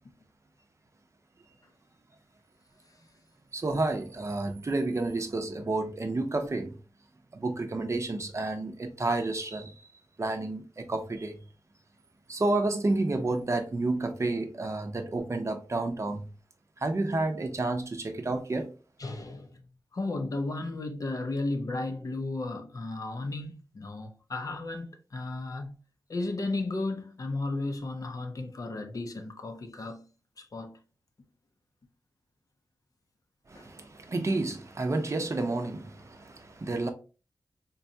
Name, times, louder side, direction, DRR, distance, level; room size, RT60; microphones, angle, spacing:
voice 1, 3.5-6.7 7.3-9.7 10.2-11.4 12.3-16.2 16.8-18.7 33.5-36.9, right 2 dB, 40° right, 0.6 m, -30 dB
voice 2, 19.0-19.6 19.9-25.8 26.1-30.1 30.4-30.8 33.6-33.7, left 2 dB, 50° left, 0.5 m, -34 dB
3.9 x 2.2 x 2.6 m
wide cardioid pair, 95°, 7 cm